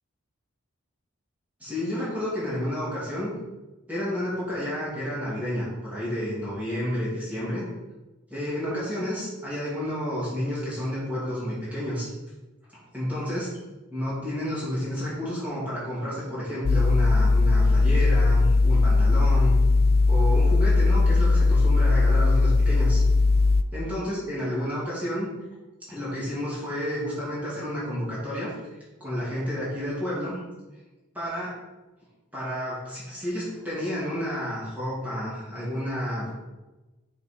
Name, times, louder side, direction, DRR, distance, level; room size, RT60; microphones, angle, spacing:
voice 1, 1.6-3.3 3.9-7.6 8.3-12.1 12.9-13.5 13.9-19.5 20.1-23.0 23.7-25.3 25.9-28.5 29.0-30.4 31.1-31.6 32.3-36.3, equal, 5° right, -9 dB, 2.5 m, -30 dB
sound 1, 16.6-23.6, left 3 dB, 45° left, 0.3 m, -19 dB
6.4 x 5.3 x 4.5 m, 1.1 s
head